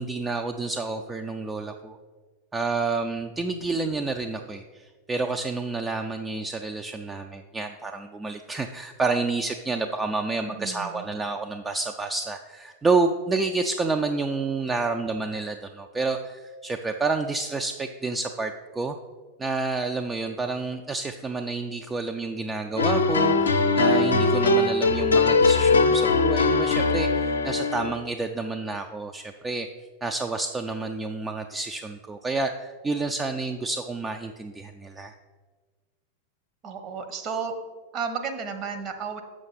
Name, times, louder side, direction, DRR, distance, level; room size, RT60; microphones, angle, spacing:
voice 1, 0.0-2.0 2.5-19.0 19.4-29.7 30.0-35.2, right 3 dB, 15° right, 5 dB, 0.4 m, -29 dB
voice 2, 10.4-11.1 36.6-37.5 37.9-39.2, right 6 dB, 35° right, 6 dB, 0.9 m, -33 dB
sound 1, 22.8-28.0, left 3 dB, 75° left, 0.6 m, -21 dB
7.1 x 6.2 x 4.0 m, 1.4 s
figure-of-eight pair, 90°, 0 cm